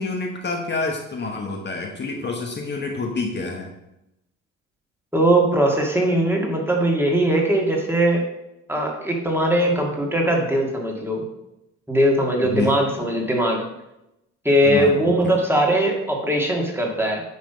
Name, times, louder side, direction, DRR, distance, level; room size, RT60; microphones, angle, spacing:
voice 1, 0.0-3.7 12.4-12.8 14.6-15.1, left 3 dB, 35° left, 1 dB, 1.1 m, -27 dB
voice 2, 5.1-8.2 8.7-11.2 11.9-13.6 14.5-17.2, right 1 dB, 10° right, 0 dB, 1.8 m, -20 dB
9.4 x 3.3 x 5.6 m, 0.89 s
cardioid pair, 90°, 30 cm